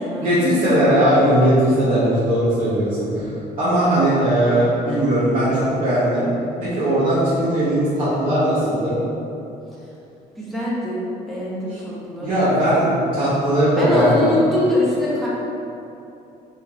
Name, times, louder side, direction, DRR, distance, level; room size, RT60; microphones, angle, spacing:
voice 1, 0.2-3.3 3.6-6.3 6.6-9.0 11.7-11.8 12.2-14.3, right 1 dB, 30° right, -14 dB, 1.4 m, -18 dB
voice 2, 10.4-12.4 13.8-15.3, left 1 dB, ahead, -8 dB, 1.1 m, -22 dB
3.5 x 3.3 x 3.1 m, 2.8 s
cardioid pair, 110°, 17 cm